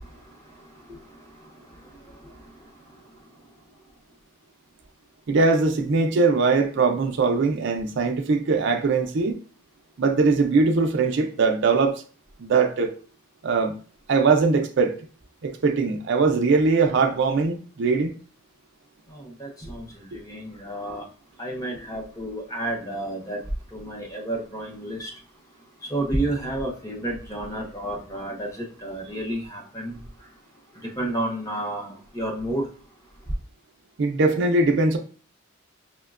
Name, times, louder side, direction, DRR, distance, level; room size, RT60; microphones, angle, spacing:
voice 1, 5.3-9.4 10.0-12.0 12.4-12.9 13.4-13.8 14.1-15.0 15.4-18.1 20.1-20.2 34.0-35.0, right 4 dB, 55° right, 0.4 m, -21 dB
voice 2, 19.1-21.0 21.4-23.4 23.7-25.1 25.9-30.0 31.0-32.7, right 1 dB, 15° left, 0.7 m, -30 dB
5.9 x 2.1 x 2.3 m
head